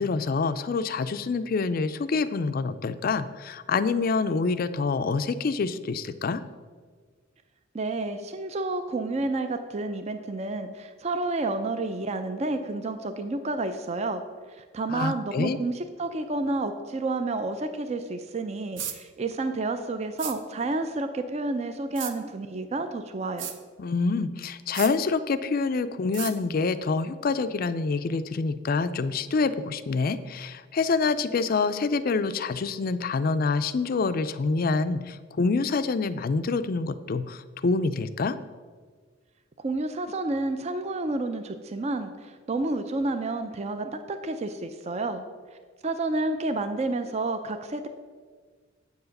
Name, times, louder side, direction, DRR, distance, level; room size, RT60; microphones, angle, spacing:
voice 1, 0.0-6.4 14.9-15.6 23.8-38.4, left 4 dB, 45° left, 12 dB, 0.4 m, -26 dB
voice 2, 7.7-14.2 14.6-23.5 39.6-45.2 45.8-47.9, right 2 dB, 35° right, 8 dB, 0.4 m, -30 dB
sound 1, 18.8-19.0 20.2-20.4 22.0-22.1 23.4-23.6 24.7-24.9 26.1-26.3, right 9 dB, 65° right, 0.7 m, -34 dB
8.2 x 4.8 x 6.5 m, 1.5 s
head